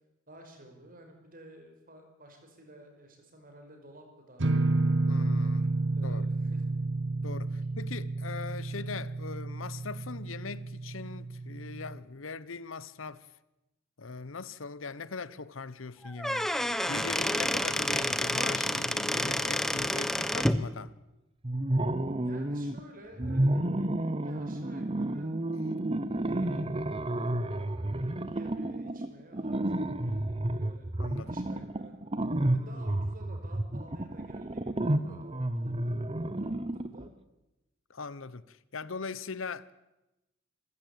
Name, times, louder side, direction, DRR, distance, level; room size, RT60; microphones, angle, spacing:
voice 1, 0.3-5.2 5.5-6.8 17.6-17.7 22.2-25.4 26.2-26.7 27.1-32.0 32.4-37.1, right 1 dB, 45° right, 5.5 m, -53 dB
sound 1, 4.4-12.0, right 2 dB, 60° right, 1.2 m, -31 dB
voice 2, 5.1-5.7 6.0-6.5 7.2-13.3 14.0-16.5 16.9-20.9 31.0-31.3 37.9-39.7, left 4 dB, 80° left, 0.9 m, -40 dB
Squeak / Wood, 16.0-20.6, equal, ahead, 1.0 m, -29 dB
sound 2, 21.4-22.8 23.2-37.1, right 1 dB, 30° right, 1.0 m, -31 dB
27.5 x 15.5 x 8.6 m
head